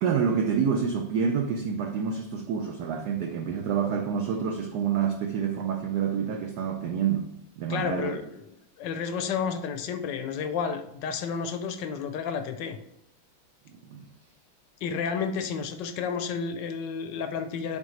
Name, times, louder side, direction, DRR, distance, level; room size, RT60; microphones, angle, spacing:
voice 1, 0.0-7.3 7.6-8.2 13.7-14.1, right 7 dB, 75° right, 0.9 m, -28 dB
voice 2, 7.7-8.4 8.8-12.8 14.8-17.8, left 6 dB, 70° left, 1.1 m, -31 dB
8.8 x 3.7 x 3.1 m
omnidirectional pair, 2.3 m